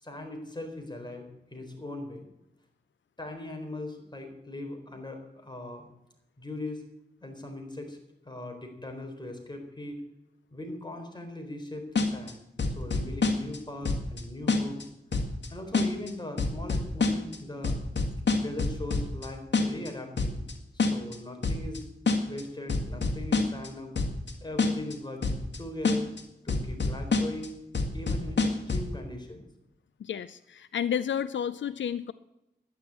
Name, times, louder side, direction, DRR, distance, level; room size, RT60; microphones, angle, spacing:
voice 1, 0.0-2.3 3.2-5.9 6.4-6.8 7.2-8.0 8.2-10.0 10.5-12.4 12.7-14.9 15.5-17.8 18.4-20.4 20.7-21.8 22.2-24.0 24.4-26.1 26.4-27.5 27.9-29.5, left 1 dB, 25° left, 3 dB, 4.2 m, -39 dB
sound 1, 12.0-12.3 12.6-13.6 13.8-14.2 14.5-14.8 15.1-15.5 15.7-16.1 16.4-17.4 17.6-19.3 19.5-19.9 20.2-20.5 20.8-21.2 21.4-21.8 22.1-22.4 22.7-23.7 24.0-24.3 24.6-24.9 25.2-25.6 25.8-26.2 26.5-27.5 27.7-28.9, left 3 dB, 70° left, 1.9 m, -26 dB
voice 2, 30.0-32.1, left 8 dB, 90° left, 15 dB, 0.5 m, -31 dB
11.5 x 10.5 x 8.3 m, 0.87 s
cardioid pair, 55°, 19 cm